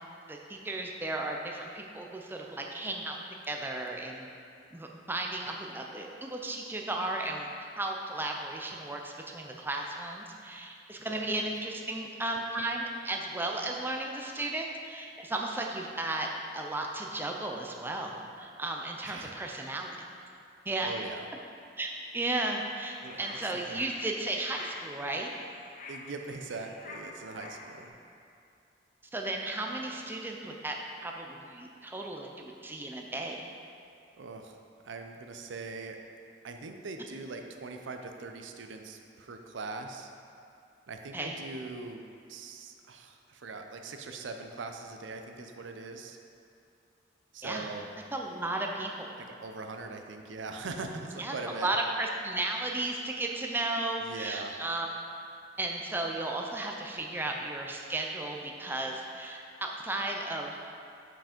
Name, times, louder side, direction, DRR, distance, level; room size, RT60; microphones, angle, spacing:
voice 1, 0.3-3.2 3.5-4.3 4.7-16.3 16.5-20.0 20.7-20.9 21.8-25.3 29.1-30.8 31.0-33.5 41.1-41.4 47.4-47.7 48.1-49.1 51.2-54.9 55.6-60.6, right 2 dB, 10° right, 1 dB, 0.4 m, -34 dB
voice 2, 11.0-11.4 19.0-19.3 20.8-21.3 23.0-23.4 23.7-23.8 25.9-27.9 34.2-34.6 34.8-36.0 36.4-40.1 40.9-42.0 42.3-46.2 47.3-47.9 49.4-51.7 54.1-54.6 57.1-57.2, right 3 dB, 75° right, 5 dB, 0.5 m, -41 dB
sound 1, 22.6-27.9, left 2 dB, 45° left, 0.7 m, -47 dB
5.9 x 4.9 x 5.0 m, 2.5 s
head